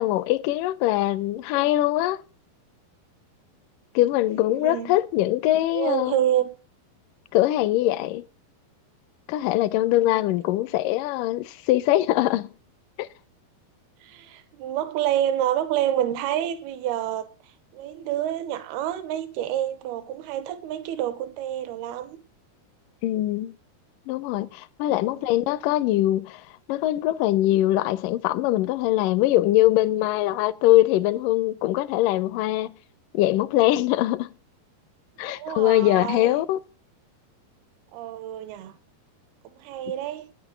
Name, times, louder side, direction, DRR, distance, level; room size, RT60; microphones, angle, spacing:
voice 1, 0.0-2.2 4.0-6.2 7.3-8.3 9.3-12.5 13.0-13.1 23.0-23.6 24.1-26.4 26.7-32.8 33.1-34.3 35.2-36.6, left 15 dB, 80° left, 2.0 m, -22 dB
voice 2, 4.5-4.9 5.7-6.5 10.0-10.2 14.0-17.3 17.7-22.2 25.1-25.3 35.2-36.4 37.9-38.8 39.4-40.3, right 11 dB, 90° right, 2.9 m, -28 dB
9.5 x 8.1 x 8.2 m
omnidirectional pair, 4.4 m